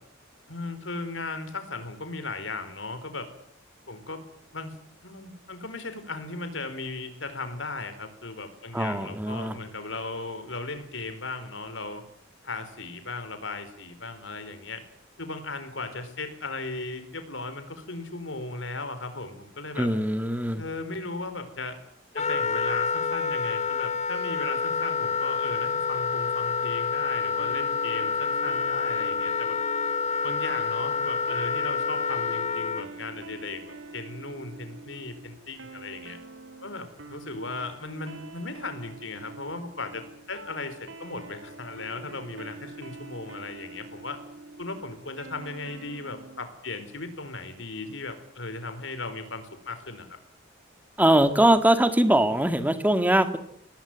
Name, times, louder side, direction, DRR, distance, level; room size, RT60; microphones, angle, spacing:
voice 1, 0.5-3.3 3.9-4.2 4.5-4.8 5.0-12.1 12.4-14.8 15.2-19.9 20.6-21.8 22.1-29.6 30.2-33.6 33.9-36.2 36.6-44.2 44.6-50.2, left 3 dB, 75° left, 10 dB, 4.5 m, -37 dB
voice 2, 8.7-9.6 19.8-20.6 51.0-53.4, right 1 dB, 10° right, 10 dB, 2.0 m, -22 dB
Wind instrument woodwind instrument, 22.2-32.8, left 5 dB, 35° left, 1.2 m, -28 dB
sound 1, 27.4-46.5, right 2 dB, 75° right, 3.6 m, -46 dB
24.0 x 18.5 x 9.4 m, 0.69 s
head